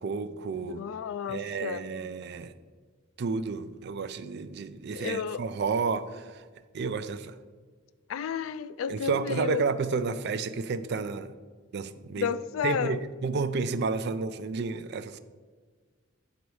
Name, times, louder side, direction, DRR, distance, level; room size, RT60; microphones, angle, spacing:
voice 1, 0.0-0.8 1.3-2.5 3.2-6.5 6.7-7.4 8.9-11.3 11.7-12.3 12.6-15.2, right 4 dB, 55° right, 0.4 m, -31 dB
voice 2, 0.6-1.8 4.9-5.4 8.1-9.6 12.2-13.1, left 7 dB, 80° left, 0.3 m, -32 dB
9.3 x 4.0 x 4.7 m
head